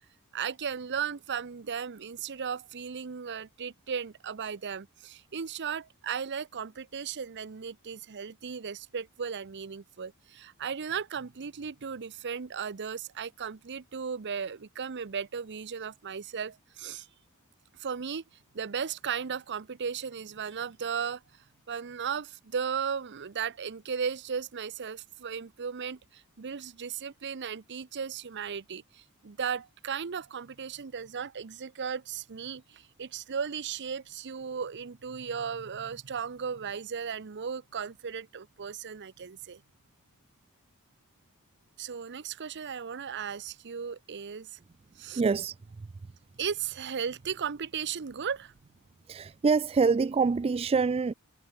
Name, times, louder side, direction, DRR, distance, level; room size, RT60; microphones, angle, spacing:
voice 1, 0.3-17.1 17.8-18.2 18.5-21.2 21.7-39.6 41.8-44.6 45.0-45.2 46.4-48.5, right 7 dB, 50° right, 0.7 m, -36 dB
voice 2, 45.2-45.6 49.1-51.1, right 5 dB, 25° right, 0.3 m, -25 dB
head